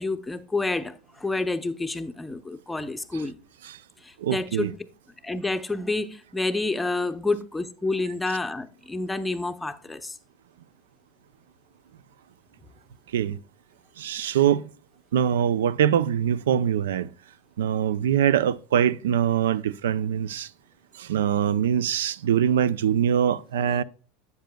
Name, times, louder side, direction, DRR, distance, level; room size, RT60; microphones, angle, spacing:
voice 1, 0.0-3.4 4.0-4.8 5.2-10.1, left 2 dB, 10° left, 0.6 m, -29 dB
voice 2, 4.2-4.7 13.1-13.4 14.0-14.6 15.1-17.1 17.6-20.5 21.0-23.8, right 9 dB, 85° right, 0.3 m, -23 dB
10.0 x 7.9 x 2.2 m
hypercardioid pair, 105°, 0 cm